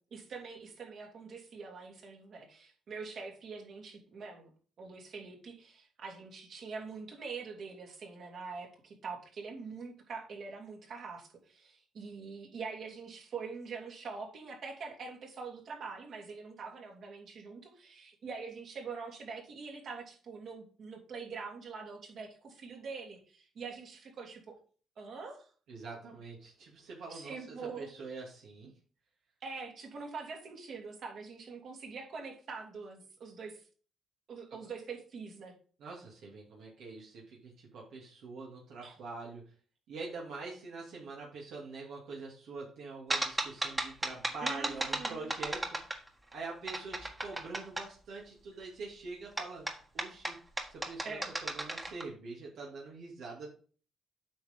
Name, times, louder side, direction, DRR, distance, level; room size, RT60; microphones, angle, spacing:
voice 1, 0.0-4.5 4.8-24.6 25.0-25.5 27.1-27.9 29.4-33.6 34.3-35.5 38.8-39.0 44.4-45.3 51.0-51.3, right 4 dB, 60° right, 0 dB, 3.1 m, -44 dB
voice 2, 25.7-28.7 34.5-34.6 35.8-39.5 39.9-45.9 46.3-49.7 49.9-50.4 50.7-53.5, right 3 dB, 80° right, -3 dB, 2.5 m, -45 dB
sound 1, 43.1-46.3 46.7-47.9 49.4-52.0, right 1 dB, 15° right, 1.6 m, -35 dB
8.6 x 5.9 x 3.6 m, 0.40 s
cardioid pair, 90°, 0 cm